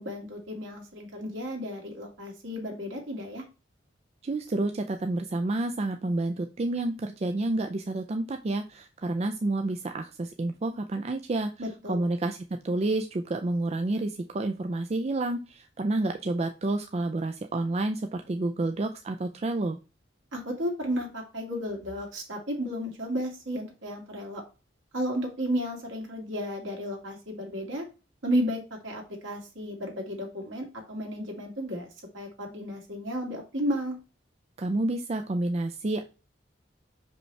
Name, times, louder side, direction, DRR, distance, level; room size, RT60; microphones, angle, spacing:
voice 1, 0.0-3.4 11.6-12.0 20.3-24.4 24.9-27.8 28.2-31.9 32.1-34.0, equal, 90° right, 0 dB, 2.2 m, -33 dB
voice 2, 4.2-11.5 11.9-19.8 34.6-36.0, right 2 dB, 35° right, 6 dB, 0.4 m, -29 dB
5.8 x 5.2 x 3.2 m, 0.32 s
head